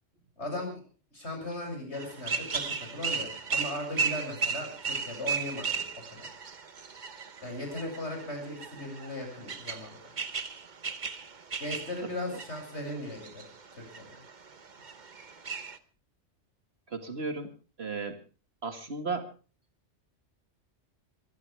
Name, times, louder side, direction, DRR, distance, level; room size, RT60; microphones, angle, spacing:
voice 1, 0.4-0.8 1.1-6.3 7.4-10.0 11.6-14.2, left 1 dB, 70° left, 3 dB, 7.6 m, -38 dB
sound 1, 1.9-15.8, right 5 dB, 40° right, 1.1 m, -36 dB
voice 2, 16.9-17.5 17.8-18.2 18.6-19.3, right 4 dB, 60° right, 7 dB, 2.3 m, -34 dB
22.0 x 16.5 x 3.4 m, 0.36 s
omnidirectional pair, 1.2 m